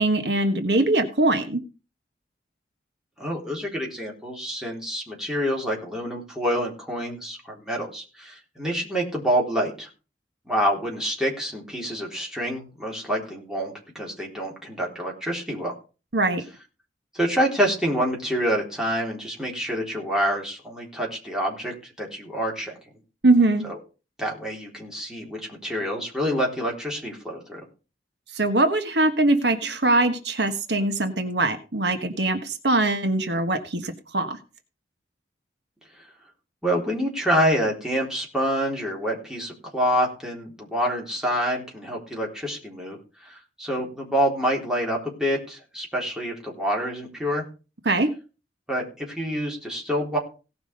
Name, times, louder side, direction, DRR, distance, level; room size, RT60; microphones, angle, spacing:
voice 1, 0.0-1.6 16.1-16.4 23.2-23.6 28.3-34.4 47.8-48.1, right 2 dB, 70° right, 7 dB, 1.4 m, -22 dB
voice 2, 3.2-9.9 10.5-15.7 17.1-22.8 23.7-23.8 24.2-27.7 36.6-47.4 48.7-50.2, equal, 5° right, -2 dB, 3.8 m, -27 dB
17.5 x 6.0 x 5.4 m, 0.33 s
head